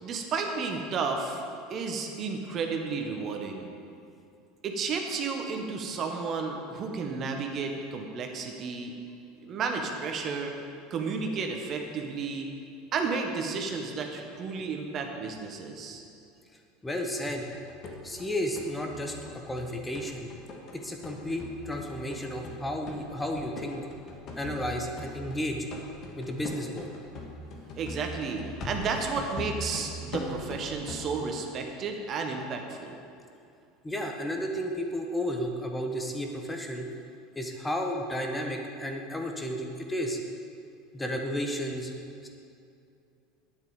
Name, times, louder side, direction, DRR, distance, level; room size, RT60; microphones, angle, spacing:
voice 1, 0.0-1.4 1.7-3.7 4.6-8.9 9.4-10.5 10.9-12.5 12.9-16.0 27.8-32.9, right 4 dB, 40° right, 3 dB, 1.4 m, -32 dB
voice 2, 16.8-17.4 18.0-19.1 19.5-20.3 20.7-23.9 24.4-25.6 26.2-26.9 28.6-28.7 33.8-36.9 37.3-40.2 40.9-41.9 42.2-42.3, equal, 10° left, 3 dB, 1.4 m, -32 dB
sound 1, 17.2-17.3 17.5-31.0, left 2 dB, 45° left, 2.0 m, -41 dB
11.0 x 9.9 x 5.2 m, 2.4 s
figure-of-eight pair, 75°, 0 cm